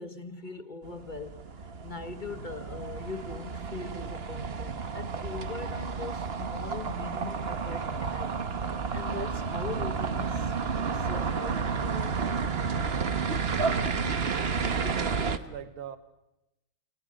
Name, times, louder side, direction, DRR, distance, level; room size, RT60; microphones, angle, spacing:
voice 1, 0.0-1.4 1.8-10.5 10.9-12.3, left 4 dB, 25° left, 1.3 m, -41 dB
sound 1, 0.8-15.4, right 5 dB, 35° right, 1.2 m, -31 dB
voice 2, 14.6-16.0, right 9 dB, 80° right, 2.1 m, -42 dB
29.5 x 28.0 x 6.6 m
omnidirectional pair, 2.3 m